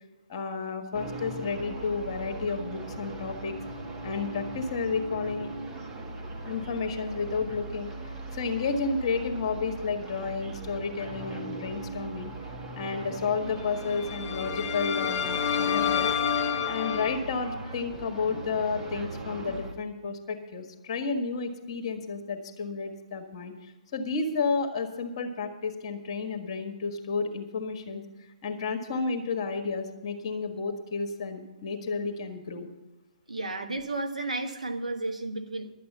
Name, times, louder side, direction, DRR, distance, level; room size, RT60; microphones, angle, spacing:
voice 1, 0.3-3.6 4.0-5.5 6.4-7.9 8.3-12.3 12.8-16.1 16.6-23.5 23.9-28.0 28.4-32.7, left 4 dB, 40° left, 6 dB, 1.6 m, -31 dB
sound 1, 0.9-19.7, right 3 dB, 20° right, 1.5 m, -39 dB
sound 2, 13.8-17.2, left 8 dB, 25° left, 0.8 m, -28 dB
voice 2, 33.3-35.7, right 2 dB, 80° right, 5 dB, 1.3 m, -33 dB
12.0 x 8.5 x 7.1 m, 1.0 s
figure-of-eight pair, 130°, 4 cm